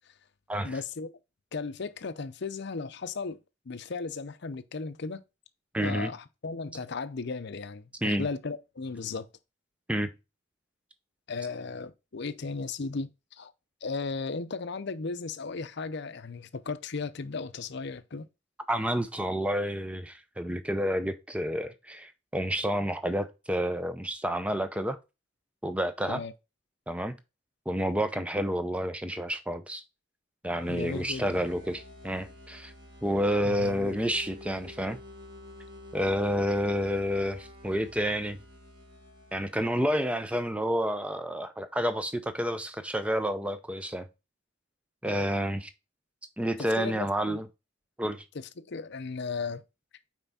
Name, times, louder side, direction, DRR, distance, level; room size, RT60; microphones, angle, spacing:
voice 1, 0.6-1.1 1.5-3.4 3.7-5.2 5.8-9.3 11.3-13.5 13.8-18.3 26.1-26.3 30.7-31.5 33.4-34.0 45.1-45.2 46.6-47.4 48.3-49.6, left 4 dB, 55° left, 0.6 m, -36 dB
voice 2, 5.7-6.1 8.0-8.3 9.9-10.1 18.7-25.0 25.6-26.2 26.9-27.2 27.7-29.8 30.4-32.7 33.0-35.0 35.9-38.4 39.3-44.1 45.0-45.7 46.4-47.5 48.0-48.2, equal, 5° right, 0.6 m, -29 dB
sound 1, 30.5-40.0, left 1 dB, 50° right, 2.1 m, -49 dB
5.8 x 4.5 x 4.1 m
head